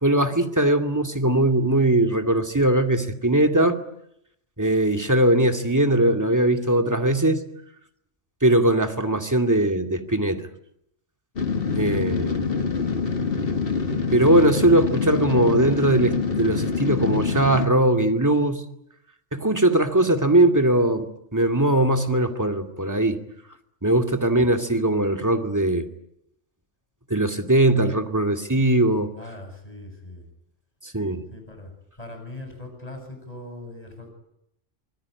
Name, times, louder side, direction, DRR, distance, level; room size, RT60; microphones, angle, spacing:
voice 1, 0.0-3.8 4.6-7.4 8.4-10.4 11.8-12.4 14.1-18.6 19.3-23.2 23.8-25.9 27.1-29.1 30.8-31.2, right 1 dB, 15° right, 5 dB, 2.3 m, -20 dB
sound 1, 11.4-17.7, left 5 dB, 50° left, 1.9 m, -25 dB
voice 2, 24.2-24.6 29.2-30.2 31.3-31.7 32.0-34.1, left 2 dB, 30° left, 5 dB, 7.9 m, -40 dB
25.5 x 20.5 x 9.7 m, 0.77 s
omnidirectional pair, 1.2 m